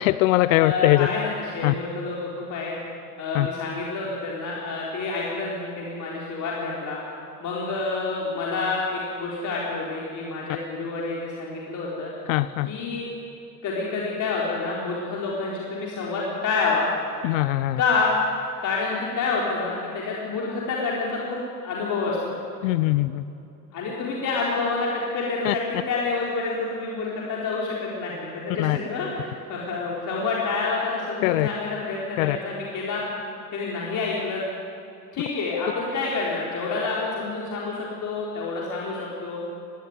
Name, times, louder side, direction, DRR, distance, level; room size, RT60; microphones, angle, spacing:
voice 1, 0.0-1.1 1.6-1.7 3.3-3.5 12.3-12.7 17.2-17.8 22.6-23.2 25.4-25.5 28.6-28.8 31.2-31.5 32.2-32.4, left 18 dB, 60° left, 16 dB, 0.7 m, -21 dB
voice 2, 0.5-2.8 3.2-7.0 7.4-12.1 12.7-13.1 13.6-16.9 17.8-18.1 18.6-22.4 23.7-33.0 33.5-34.4 35.1-39.4, left 4 dB, 40° left, -4 dB, 4.2 m, -28 dB
20.0 x 17.0 x 9.7 m, 2.7 s
figure-of-eight pair, 75°, 46 cm